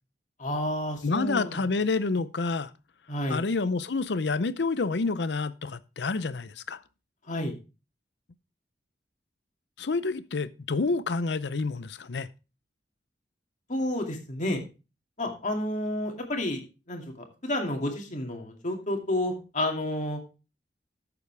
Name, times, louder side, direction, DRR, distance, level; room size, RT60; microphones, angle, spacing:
voice 1, 0.4-1.6 3.1-3.4 7.3-7.6 13.7-14.6 15.2-16.6 16.9-17.0 17.4-20.2, left 1 dB, 45° left, 2.4 m, -30 dB
voice 2, 1.0-2.7 3.3-6.8 9.8-12.3, left 3 dB, 70° left, 0.6 m, -28 dB
13.0 x 7.0 x 3.3 m
head